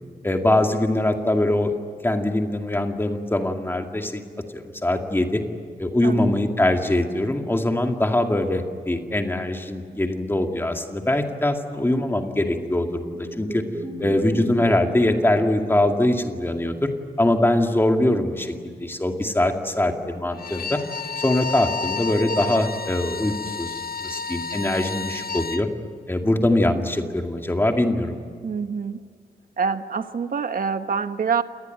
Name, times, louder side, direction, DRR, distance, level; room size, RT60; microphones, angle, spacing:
voice 1, 0.2-1.7 2.0-4.2 4.5-5.4 5.8-13.6 14.0-16.9 17.2-20.8 21.2-25.7 26.1-28.1, left 1 dB, 15° left, 4 dB, 2.2 m, -22 dB
sound 1, 12.3-16.3, equal, 20° right, 3.2 m, -36 dB
Bowed string instrument, 20.3-25.7, left 4 dB, 65° left, 1.1 m, -31 dB
voice 2, 28.4-29.0 29.6-31.4, right 6 dB, 60° right, 9 dB, 1.2 m, -26 dB
27.5 x 20.0 x 9.2 m, 2.2 s
wide cardioid pair, 145°, 16 cm